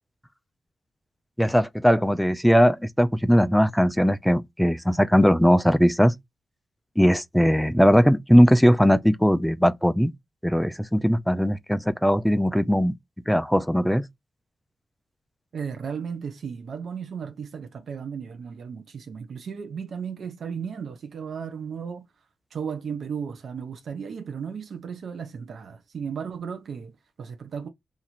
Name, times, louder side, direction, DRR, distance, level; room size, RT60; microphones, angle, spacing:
voice 1, 1.4-6.1 7.0-10.1 10.4-12.9 13.3-14.0, equal, ahead, 0.3 m, -19 dB
voice 2, 15.5-22.1 22.5-27.7, right 6 dB, 70° right, 0.5 m, -35 dB
2.9 x 2.5 x 4.1 m
cardioid pair, 85°, 0 cm